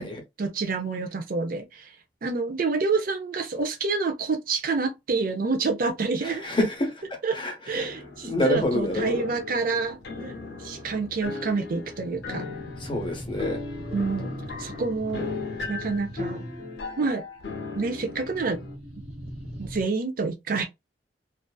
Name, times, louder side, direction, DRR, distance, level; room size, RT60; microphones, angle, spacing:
voice 1, 0.4-6.4 7.2-7.4 7.7-12.5 13.9-15.3 15.7-16.5 17.0-17.2 17.7-18.6 19.6-20.7, right 4 dB, 55° right, 0.5 m, -28 dB
voice 2, 6.2-6.9 7.3-7.9 8.2-9.2 12.8-13.6, left 1 dB, 30° left, 0.8 m, -27 dB
sound 1, 7.8-18.8, left 4 dB, 70° left, 0.6 m, -37 dB
sound 2, 8.5-9.2 10.1-11.1 11.8-16.7 18.1-19.8, equal, 35° right, 1.1 m, -40 dB
2.5 x 2.3 x 2.3 m
head